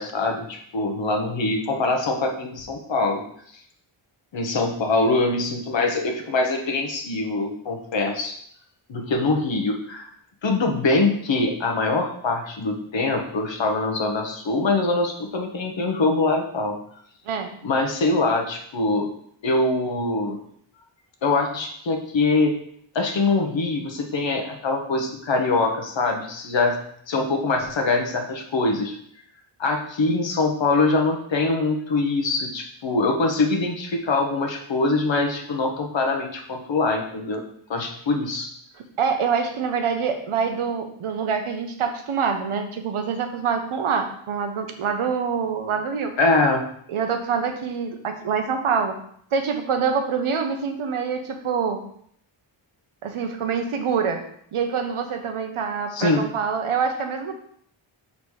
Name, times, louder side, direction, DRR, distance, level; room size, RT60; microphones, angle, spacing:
voice 1, 0.0-3.2 4.3-8.3 8.9-10.1 10.4-16.8 17.6-19.1 19.4-20.4 21.2-22.5 22.9-26.8 27.1-29.0 29.6-37.4 37.7-38.5 46.2-46.7 55.9-56.2, left 3 dB, 60° left, 3 dB, 1.2 m, -23 dB
voice 2, 39.0-46.1 46.9-49.0 49.3-51.8 53.0-54.2 54.5-57.3, right 6 dB, 75° right, 6 dB, 1.0 m, -25 dB
5.1 x 4.1 x 4.7 m, 0.65 s
cardioid pair, 80°, 50 cm